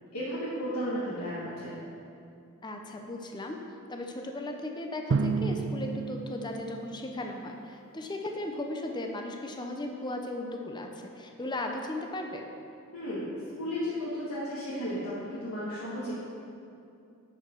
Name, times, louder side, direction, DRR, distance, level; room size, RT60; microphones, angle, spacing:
voice 1, 0.1-1.7 12.9-13.3 13.6-16.1, equal, 90° left, -9 dB, 1.6 m, -34 dB
voice 2, 2.6-3.6 3.9-12.4, left 1 dB, 20° left, 2 dB, 0.6 m, -36 dB
Drum, 5.1-7.7, right 4 dB, 60° right, 0.5 m, -32 dB
11.5 x 4.8 x 4.5 m, 2.6 s
head